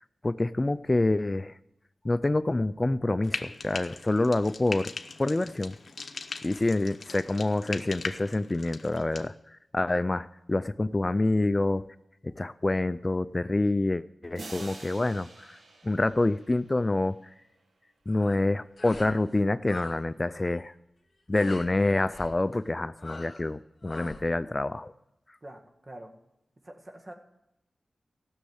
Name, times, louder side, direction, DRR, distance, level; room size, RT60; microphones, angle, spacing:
voice 1, 0.2-1.5 2.0-4.9 5.2-5.7 6.4-9.3 9.7-11.9 12.2-15.6 15.8-17.2 18.1-20.7 21.3-24.9, left 2 dB, 30° left, 14 dB, 0.3 m, -27 dB
Frying (food), 3.2-9.3, left 4 dB, 65° left, 0.8 m, -40 dB
sound 1, 14.3-17.2, right 2 dB, 80° right, 1.4 m, -47 dB
sound 2, 18.1-18.4 18.8-19.2 19.4-20.0 20.3-20.6 21.3-21.7 22.1-22.4 23.0-23.5 23.8-24.3, left 3 dB, 50° left, 2.0 m, -44 dB
voice 2, 25.4-26.1 26.6-27.1, right 1 dB, 40° right, 4 dB, 1.7 m, -45 dB
15.0 x 6.4 x 8.0 m, 0.88 s
cardioid pair, 60°, 0 cm